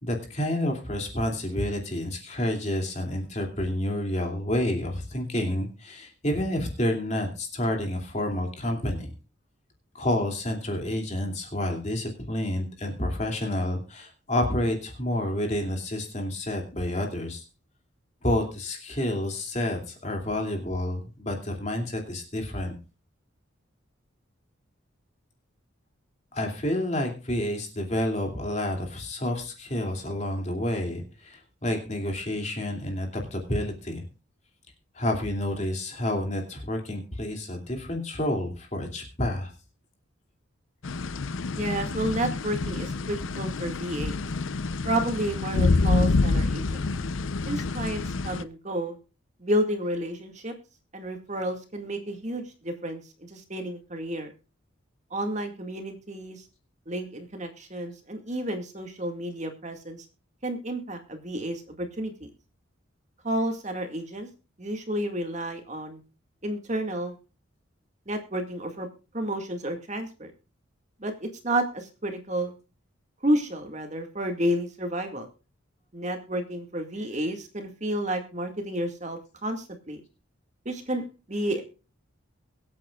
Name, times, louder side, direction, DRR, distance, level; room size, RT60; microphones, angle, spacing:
voice 1, 0.0-9.1 9.9-17.4 18.2-22.7 26.3-34.0 34.9-39.5, left 1 dB, 35° left, 3 dB, 2.7 m, -29 dB
sound 1, 40.8-48.4, left 3 dB, 75° left, 0.7 m, -27 dB
voice 2, 41.6-44.2 44.8-46.8 47.5-49.0 49.4-50.5 50.9-53.0 53.3-54.3 55.1-56.4 56.9-60.0 60.4-62.3 63.2-64.3 64.6-66.0 66.4-67.2 68.1-68.9 69.1-70.3 71.0-72.5 73.2-75.3 75.9-80.0 80.7-81.0 81.3-81.6, right 1 dB, 35° right, 5 dB, 2.0 m, -31 dB
23.0 x 8.6 x 2.4 m, 0.33 s
head